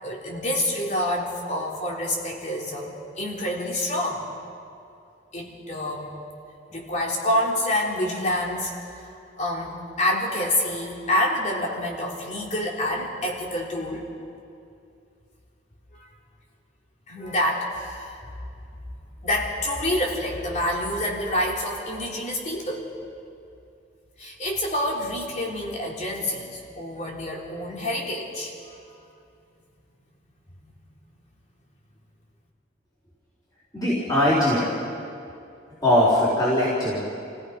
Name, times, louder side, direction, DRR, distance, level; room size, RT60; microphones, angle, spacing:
voice 1, 0.0-4.3 5.3-6.1 6.7-14.1 15.9-16.1 17.1-18.2 19.2-22.9 24.2-29.0, left 1 dB, 40° left, -2 dB, 3.4 m, -27 dB
voice 2, 33.7-34.7 35.8-37.0, left 1 dB, 20° left, -8 dB, 4.2 m, -20 dB
29.5 x 17.0 x 5.3 m, 2.5 s
head